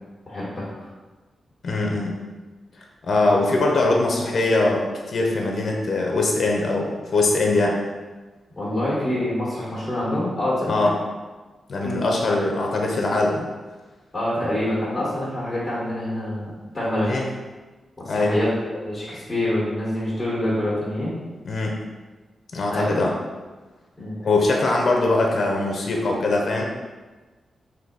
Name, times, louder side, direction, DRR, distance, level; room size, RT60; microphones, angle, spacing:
voice 1, 0.3-0.9 3.2-3.3 8.6-10.8 11.8-12.1 14.1-17.1 18.0-18.5 18.8-21.1 22.7-22.9 24.0-24.2, left 1 dB, 10° left, -8 dB, 1.4 m, -26 dB
voice 2, 1.6-2.1 3.1-7.8 10.7-10.9 11.7-13.4 17.1-17.3 18.1-18.3 21.4-21.8 22.5-23.1 24.2-26.6, left 2 dB, 55° left, 0 dB, 0.6 m, -21 dB
3.7 x 2.7 x 4.0 m, 1.3 s
wide cardioid pair, 105°, 0 cm